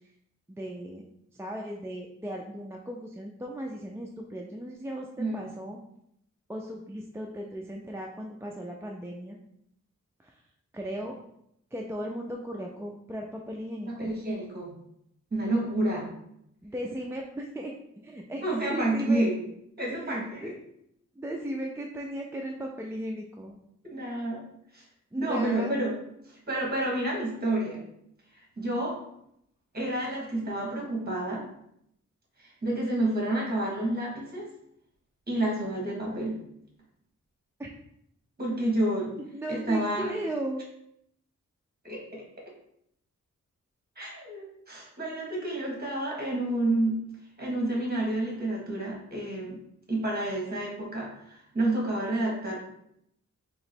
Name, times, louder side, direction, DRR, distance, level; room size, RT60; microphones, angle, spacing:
voice 1, 0.5-1.0 1.3-5.8 6.5-9.4 10.2-10.4 10.7-11.2 11.7-14.1 16.6-17.7 18.0-19.3 19.9-20.6 21.2-23.6 25.1-25.8 37.6-37.7 39.1-40.6, right 1 dB, 10° right, -1 dB, 0.3 m, -36 dB
voice 2, 13.9-14.7 15.3-16.1 18.4-19.4 19.8-20.5 23.8-24.4 24.7-24.8 25.2-25.9 26.5-27.8 28.6-29.0 29.7-31.4 32.4-34.5 35.3-36.4 38.4-39.2 39.5-40.1 41.8-42.2 44.0-47.0 47.4-49.6 49.9-52.6, right 1 dB, 30° right, -2 dB, 1.4 m, -29 dB
2.9 x 2.9 x 4.3 m, 0.75 s
wide cardioid pair, 125°, 30 cm